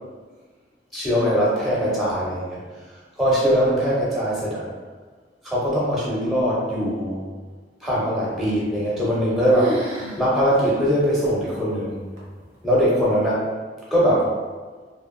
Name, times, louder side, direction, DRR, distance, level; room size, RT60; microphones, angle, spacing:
voice 1, 0.9-2.6 3.2-4.7 5.4-7.2 7.8-9.7 10.2-12.0 12.6-13.4 13.9-14.3, equal, ahead, -8 dB, 0.5 m, -21 dB
sound 1, 8.7-9.2 9.5-10.2 10.6-10.7 11.3-11.4 12.2-12.6, left 1 dB, 80° right, 0.8 m, -30 dB
2.6 x 2.3 x 2.4 m, 1.4 s
head